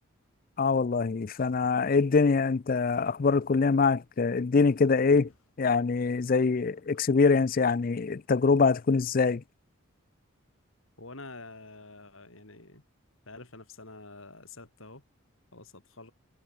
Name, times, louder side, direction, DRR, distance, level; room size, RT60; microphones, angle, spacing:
voice 1, 0.6-5.3 5.6-9.4, left 4 dB, 40° left, 0.4 m, -24 dB
sound 1, 5.1-5.6 6.4-7.8 8.5-8.6, left 1 dB, 90° left, 8.0 m, -61 dB
voice 2, 11.0-12.8 13.3-15.0 15.5-16.1, left 3 dB, 70° left, 4.1 m, -47 dB
head